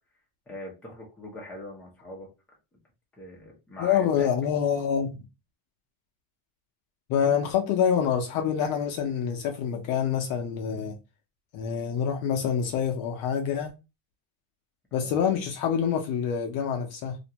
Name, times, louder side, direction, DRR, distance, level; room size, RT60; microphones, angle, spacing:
voice 1, 0.5-2.3 3.2-4.3 15.0-15.2, left 1 dB, 5° left, 0.6 m, -42 dB
voice 2, 3.8-5.2 7.1-11.0 11.5-13.7 14.9-17.2, left 8 dB, 50° left, 0.5 m, -26 dB
2.5 x 2.1 x 2.7 m
cardioid pair, 155°, 45 cm